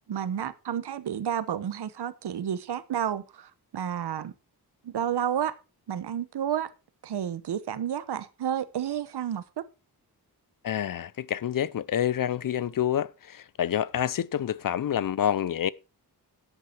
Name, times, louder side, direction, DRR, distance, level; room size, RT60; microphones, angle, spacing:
voice 1, 0.1-4.3 4.8-5.5 5.9-6.7 7.0-9.6, right 9 dB, 90° right, 1.1 m, -31 dB
voice 2, 10.6-15.7, left 10 dB, 60° left, 0.6 m, -28 dB
11.5 x 8.1 x 4.4 m
wide cardioid pair, 115°, 39 cm